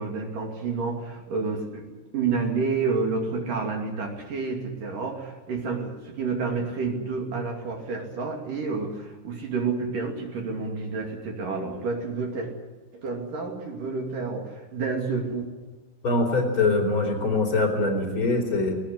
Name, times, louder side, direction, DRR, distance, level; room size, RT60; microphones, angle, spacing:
voice 1, 0.0-1.9 2.1-12.5 12.9-15.5, right 4 dB, 55° right, 2 dB, 4.0 m, -29 dB
voice 2, 16.0-18.7, left 3 dB, 30° left, 1 dB, 4.6 m, -23 dB
20.0 x 18.5 x 9.8 m, 1.2 s
omnidirectional pair, 4.7 m